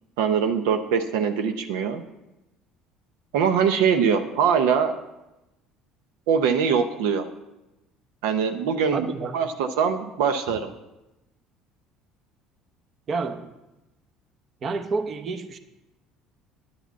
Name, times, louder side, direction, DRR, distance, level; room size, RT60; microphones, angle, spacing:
voice 1, 0.2-2.0 3.3-5.0 6.3-7.3 8.2-9.1 9.3-10.7, right 7 dB, 85° right, 7 dB, 0.6 m, -22 dB
voice 2, 8.9-9.4 13.1-13.5 14.6-15.6, right 4 dB, 45° right, 9 dB, 0.9 m, -29 dB
10.0 x 4.9 x 8.1 m, 0.97 s
supercardioid pair, 100°, 0 cm